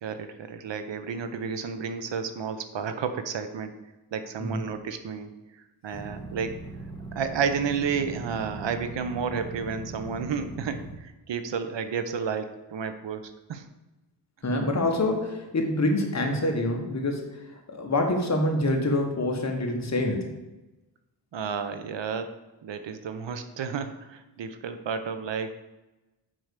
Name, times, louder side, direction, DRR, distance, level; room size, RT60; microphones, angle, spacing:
voice 1, 0.0-3.8 4.1-6.6 7.1-13.7 21.3-22.3 22.6-25.5, right 6 dB, 80° right, 9 dB, 0.9 m, -31 dB
sound 1, 5.9-10.9, right 3 dB, 10° left, 1.4 m, -40 dB
voice 2, 14.4-17.4 17.7-20.4, left 1 dB, 40° left, 2 dB, 1.4 m, -26 dB
7.7 x 4.8 x 6.5 m, 1.0 s
wide cardioid pair, 130°, 43 cm